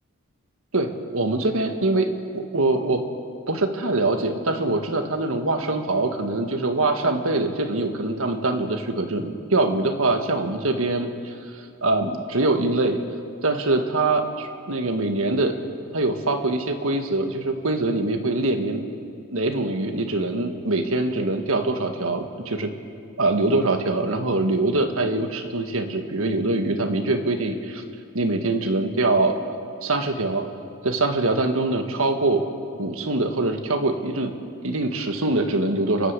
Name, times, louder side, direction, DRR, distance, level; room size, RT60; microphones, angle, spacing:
voice 1, 0.7-2.1 2.3-3.0 3.5-13.0 13.4-15.5 15.9-18.8 19.3-22.7 23.2-27.8 28.1-29.4 29.8-30.5 30.8-32.4 32.8-34.3 34.6-36.1, right 2 dB, 65° right, 5 dB, 1.9 m, -23 dB
29.5 x 11.5 x 8.3 m, 2.3 s
head